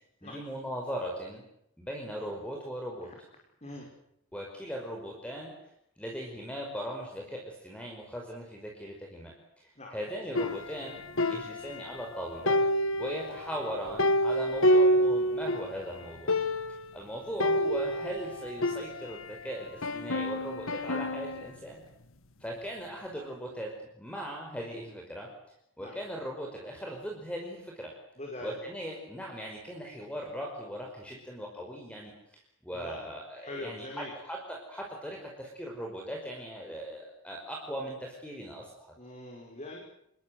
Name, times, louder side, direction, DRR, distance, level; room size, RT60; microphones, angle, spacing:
voice 1, 0.2-1.4 1.8-3.1 4.3-5.5 6.0-12.6 13.0-16.3 16.9-21.8 22.4-23.7 24.0-25.3 25.8-27.9 28.4-38.9, equal, 5° left, 0 dB, 5.2 m, -39 dB
sound 1, 10.4-12.1 12.5-15.7 16.0-16.1 16.3-16.9 17.4-19.4 19.8-21.5, equal, 70° left, 1.7 m, -28 dB
voice 2, 28.2-28.5 32.7-34.1 39.0-39.8, left 2 dB, 30° left, 0 dB, 5.7 m, -43 dB
29.0 x 22.0 x 8.1 m, 0.77 s
head